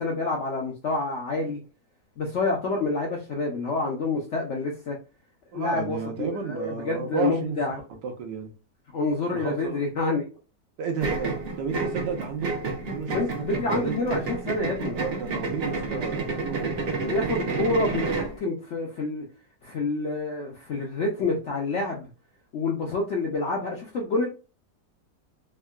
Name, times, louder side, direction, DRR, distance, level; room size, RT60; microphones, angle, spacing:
voice 1, 0.0-1.6 2.2-5.0 5.5-7.8 8.9-10.2 13.1-15.0 17.1-19.2 19.6-22.1 22.5-24.3, left 3 dB, 70° left, 0.7 m, -28 dB
voice 2, 5.5-7.6 8.0-8.5 9.3-9.9 10.8-12.6 12.9-14.0 14.9-17.6, right 5 dB, 85° right, 1.4 m, -33 dB
sound 1, 11.0-18.4, right 3 dB, 65° right, 0.6 m, -30 dB
3.5 x 2.1 x 2.3 m
omnidirectional pair, 1.9 m